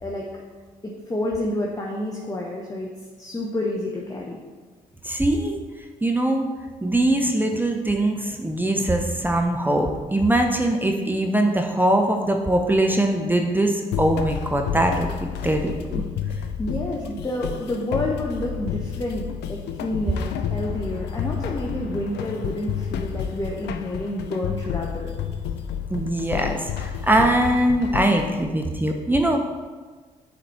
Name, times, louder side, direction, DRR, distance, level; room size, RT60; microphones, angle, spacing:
voice 1, 0.8-2.9 3.2-4.4 16.6-25.1, left 1 dB, 20° left, -2 dB, 1.1 m, -29 dB
voice 2, 5.0-5.5 6.0-6.5 6.8-16.0 25.9-29.4, right 1 dB, 10° right, 3 dB, 0.8 m, -22 dB
sound 1, 13.9-28.4, left 8 dB, 65° left, 0.5 m, -30 dB
7.8 x 4.2 x 4.4 m, 1.4 s
hypercardioid pair, 45°, 19 cm